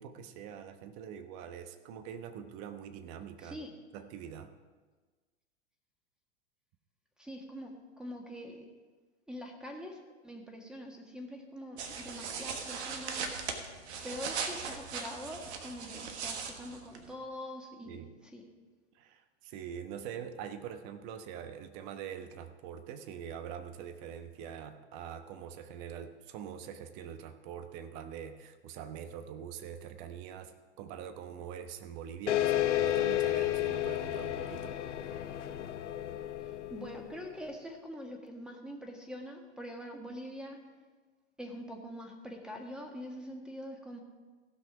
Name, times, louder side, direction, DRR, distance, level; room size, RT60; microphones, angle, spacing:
voice 1, 0.0-3.6 3.9-4.5 17.8-18.1 18.9-34.8, right 8 dB, 45° right, 9 dB, 1.1 m, -44 dB
voice 2, 3.4-3.7 7.2-8.6 9.3-13.3 14.0-18.4 36.4-40.6 41.4-44.0, equal, ahead, 2 dB, 1.6 m, -44 dB
sound 1, 11.8-17.1, right 5 dB, 65° right, 1.4 m, -39 dB
sound 2, 32.3-37.3, left 13 dB, 75° left, 0.9 m, -32 dB
16.0 x 6.1 x 4.8 m, 1.4 s
hypercardioid pair, 105°, 35 cm